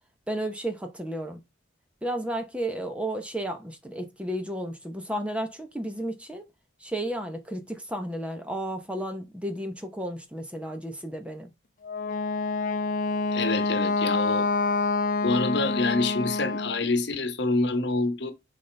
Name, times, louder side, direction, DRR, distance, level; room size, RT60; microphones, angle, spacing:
voice 1, 0.3-1.4 2.0-6.5 6.8-11.5, right 1 dB, 5° right, 0.8 m, -33 dB
Wind instrument woodwind instrument, 11.8-16.8, left 3 dB, 45° left, 0.7 m, -27 dB
voice 2, 13.3-14.5 15.2-18.3, left 3 dB, 60° left, 1.1 m, -26 dB
7.1 x 4.2 x 3.3 m
head